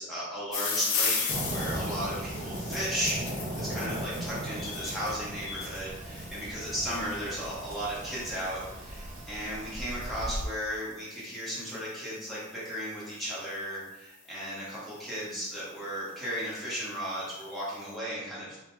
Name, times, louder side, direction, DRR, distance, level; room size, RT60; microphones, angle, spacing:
voice 1, 0.0-18.6, equal, ahead, -9 dB, 0.9 m, -35 dB
sound 1, 0.5-13.7 14.6-15.0 15.6-15.7 15.9-16.0 16.3-17.6, left 5 dB, 70° left, 0.5 m, -38 dB
Fireworks, 1.3-10.5, right 1 dB, 35° right, 0.3 m, -37 dB
2.7 x 2.2 x 3.0 m, 0.99 s
head